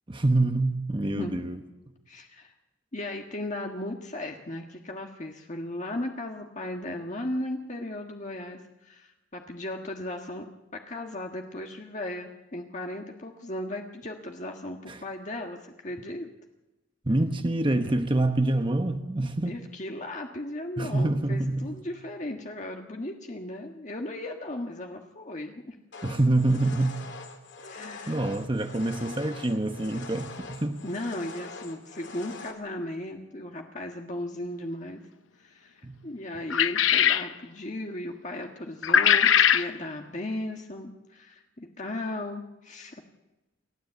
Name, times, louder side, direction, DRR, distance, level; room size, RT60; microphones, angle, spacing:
voice 1, 0.1-1.6 14.9-15.0 17.0-19.6 20.8-21.7 26.0-27.0 28.1-30.8 35.8-36.0, right 2 dB, 25° right, 6 dB, 1.0 m, -26 dB
voice 2, 1.1-1.5 2.1-2.5 2.9-10.5 10.7-16.3 19.4-25.7 27.6-28.2 30.8-35.0 35.4-43.0, left 1 dB, 40° left, 2 dB, 1.6 m, -36 dB
sound 1, 25.9-32.5, left 3 dB, 60° left, 2.9 m, -44 dB
sound 2, 36.5-37.3 38.8-39.7, left 9 dB, 80° left, 0.8 m, -20 dB
28.5 x 12.5 x 8.2 m, 1.0 s
head